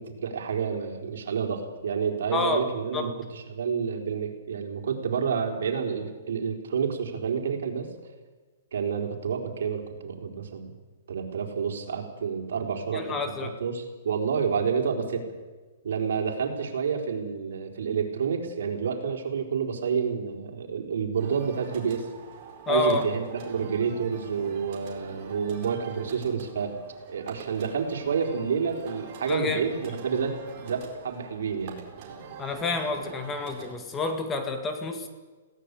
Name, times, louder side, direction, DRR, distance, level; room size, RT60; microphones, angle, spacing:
voice 1, 0.0-7.9 8.7-10.7 11.1-15.2 15.8-22.0 22.7-26.8 27.1-31.8, right 6 dB, 75° right, 3 dB, 4.3 m, -29 dB
voice 2, 2.3-2.7 2.9-3.1 12.9-13.6 22.7-23.1 29.3-29.6 32.4-35.1, left 3 dB, 15° left, 6 dB, 1.9 m, -28 dB
sound 1, 21.2-33.7, right 6 dB, 35° right, 4.5 m, -44 dB
21.0 x 17.5 x 8.5 m, 1.3 s
hypercardioid pair, 160°, 0 cm